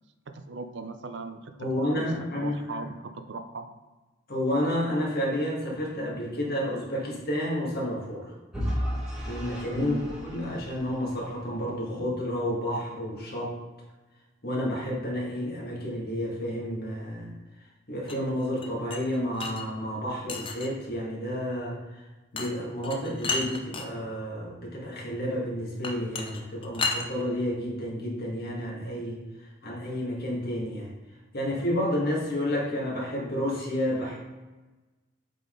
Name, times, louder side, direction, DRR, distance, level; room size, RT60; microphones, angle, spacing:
voice 1, 0.3-2.1 2.4-3.7 9.8-10.1, right 3 dB, 60° right, 8 dB, 0.5 m, -38 dB
voice 2, 1.6-2.8 4.3-8.3 9.3-13.6 14.4-17.3 17.9-21.8 22.3-29.2 29.6-30.9 31.3-34.2, equal, 50° left, -3 dB, 1.8 m, -30 dB
Vehicle / Engine, 8.5-11.5, equal, 5° right, 1.8 m, -34 dB
sound 1, 18.1-19.7 20.3-20.9 22.4-22.5 22.8-23.9 25.8-27.1, left 3 dB, 25° left, 0.6 m, -32 dB
7.5 x 3.8 x 3.8 m, 1.2 s
head